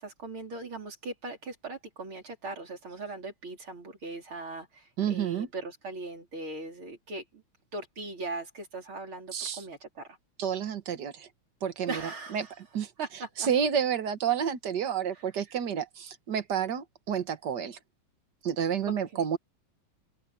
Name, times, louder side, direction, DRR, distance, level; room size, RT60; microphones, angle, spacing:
voice 1, 0.0-7.4 7.7-10.1 11.9-12.5 13.0-13.5 19.1-19.2, right 3 dB, 80° right, 5.2 m, -39 dB
voice 2, 5.0-5.5 9.3-9.6 10.4-11.3 11.6-12.0 12.3-12.5 12.7-17.8 18.4-19.4, right 8 dB, 60° right, 1.8 m, -30 dB
open air
omnidirectional pair, 2.3 m